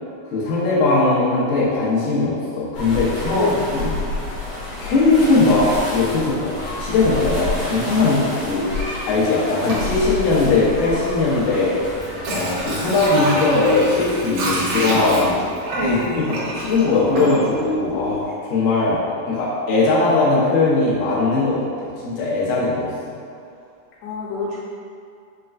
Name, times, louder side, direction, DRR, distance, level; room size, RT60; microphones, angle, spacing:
voice 1, 0.3-3.5 3.8-4.0 4.8-6.5 6.8-8.7 9.1-11.8 12.3-15.4 16.1-19.0 19.3-23.1, left 3 dB, 75° left, -8 dB, 2.2 m, -19 dB
sound 1, 2.7-13.1, left 2 dB, 55° left, 1.3 m, -29 dB
sound 2, 9.7-10.6 12.3-13.2 14.9-15.5 17.1-17.8, equal, 70° right, 1.7 m, -31 dB
Water / Sink (filling or washing), 11.8-17.7 18.1-18.2, right 1 dB, 90° right, 2.9 m, -27 dB
voice 2, 15.7-16.2 24.0-24.6, left 2 dB, 90° left, -5 dB, 2.6 m, -26 dB
6.3 x 2.2 x 2.4 m, 2.4 s
omnidirectional pair, 4.3 m